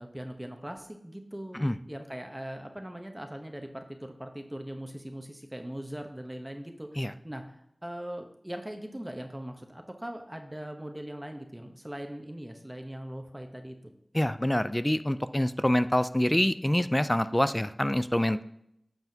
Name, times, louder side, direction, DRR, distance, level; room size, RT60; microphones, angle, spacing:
voice 1, 0.0-13.7, right 1 dB, 15° right, 4 dB, 0.9 m, -40 dB
voice 2, 14.1-18.4, left 1 dB, 20° left, 12 dB, 0.4 m, -26 dB
9.4 x 7.0 x 2.8 m, 0.74 s
wide cardioid pair, 40°, 0 cm